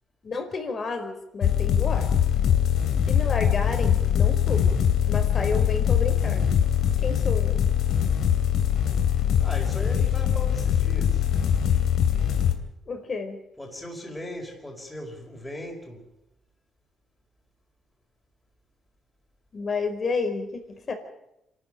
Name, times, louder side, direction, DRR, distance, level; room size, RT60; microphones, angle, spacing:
voice 1, 0.2-2.1 3.1-4.8 5.1-6.5 7.0-7.7 12.9-13.4 19.5-20.9, left 4 dB, 45° left, 6 dB, 4.7 m, -31 dB
sound 1, 1.4-12.5, left 9 dB, 75° left, 2.7 m, -22 dB
voice 2, 9.4-11.3 13.6-16.1, left 1 dB, 10° left, 0 dB, 5.0 m, -38 dB
27.0 x 13.0 x 9.0 m, 0.85 s
cardioid pair, 90°, 0 cm